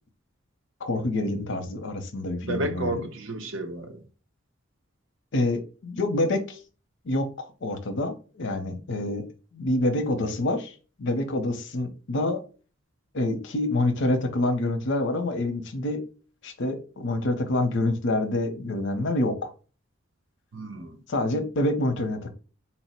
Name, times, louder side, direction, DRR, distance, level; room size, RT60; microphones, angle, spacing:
voice 1, 0.8-3.1 5.3-6.6 7.0-9.3 9.5-10.7 11.0-12.4 13.1-16.0 16.4-19.5 21.1-22.3, left 2 dB, 65° left, 0.7 m, -27 dB
voice 2, 2.4-4.0 20.5-21.0, right 2 dB, 70° right, 0.8 m, -31 dB
4.3 x 2.1 x 4.2 m
head